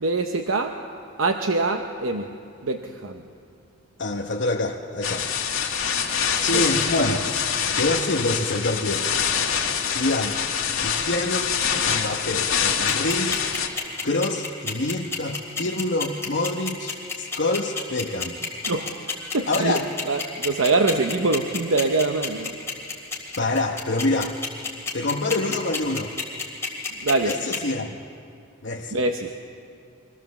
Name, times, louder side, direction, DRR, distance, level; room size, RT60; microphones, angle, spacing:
voice 1, 0.0-0.8 1.2-2.3 2.6-3.2 6.5-6.6 18.7-19.8 20.1-22.6 27.0-27.3 28.9-29.3, right 3 dB, 80° right, 5 dB, 0.9 m, -24 dB
voice 2, 4.0-5.3 6.4-7.2 7.8-9.1 9.8-10.4 10.8-11.4 11.7-13.4 14.0-18.4 18.6-18.7 19.5-19.9 23.4-24.4 24.9-26.1 27.2-28.0 28.6-29.0, left 2 dB, 60° left, -1 dB, 1.0 m, -26 dB
sound 1, 5.0-13.7, left 7 dB, 90° left, 2.1 m, -25 dB
sound 2, 12.9-27.6, left 5 dB, 15° left, 2.8 m, -28 dB
24.5 x 16.0 x 7.2 m, 2.5 s
head